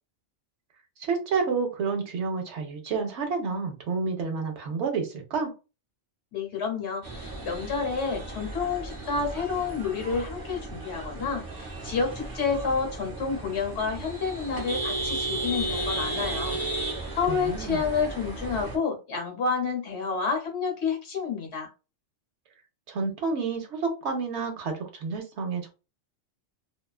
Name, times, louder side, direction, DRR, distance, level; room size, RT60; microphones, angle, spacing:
voice 1, 1.0-5.5 17.3-17.8 22.9-25.7, right 4 dB, 65° right, 4 dB, 0.9 m, -29 dB
voice 2, 6.3-21.7, left 5 dB, 65° left, 2 dB, 1.1 m, -29 dB
sound 1, 7.0-18.8, right 2 dB, 20° right, 0.6 m, -34 dB
2.4 x 2.3 x 2.3 m, 0.30 s
omnidirectional pair, 1.3 m